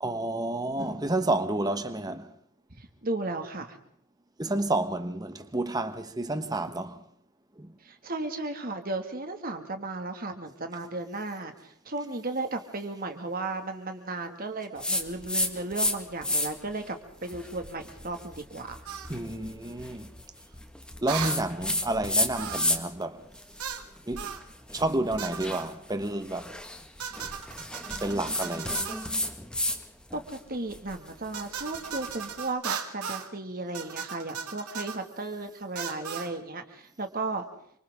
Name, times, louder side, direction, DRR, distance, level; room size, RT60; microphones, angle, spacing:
voice 1, 0.0-2.3 4.4-7.0 7.6-7.7 19.1-20.1 21.0-23.3 24.1-24.3 24.7-26.5 28.0-28.8, right 2 dB, 15° right, 1.3 m, -30 dB
voice 2, 2.8-3.8 7.8-18.8 30.1-37.5, right 2 dB, 40° right, 2.1 m, -35 dB
sound 1, 14.8-15.9 16.2-16.7 17.2-23.0 23.3-29.8 30.1-32.3, left 1 dB, 5° left, 1.6 m, -32 dB
sound 2, 18.9-19.1 21.1-21.4 22.4-22.8 23.6-23.9 24.2-24.4 25.2-25.7 27.0-29.1 31.3-33.3 33.7-35.0 35.8-36.3, right 7 dB, 85° right, 2.1 m, -36 dB
28.5 x 26.0 x 3.7 m
head